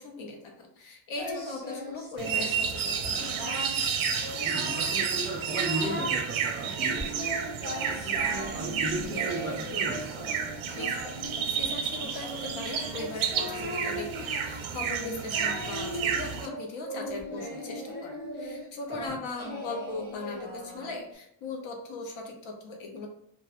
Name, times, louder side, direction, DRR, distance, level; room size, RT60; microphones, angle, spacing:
voice 1, 0.0-3.4 10.8-23.1, left 3 dB, 80° left, 2 dB, 0.7 m, -39 dB
Singing, 1.2-2.7 3.0-3.8 4.2-5.0 5.3-6.2 6.6-21.1, equal, 20° left, 0.6 m, -39 dB
sound 1, 2.2-16.5, right 7 dB, 80° right, 0.6 m, -31 dB
voice 2, 4.4-7.4 7.9-10.0 10.3-10.4, right 1 dB, 25° right, -3 dB, 0.3 m, -35 dB
2.2 x 2.0 x 2.8 m, 0.73 s
wide cardioid pair, 135°, 47 cm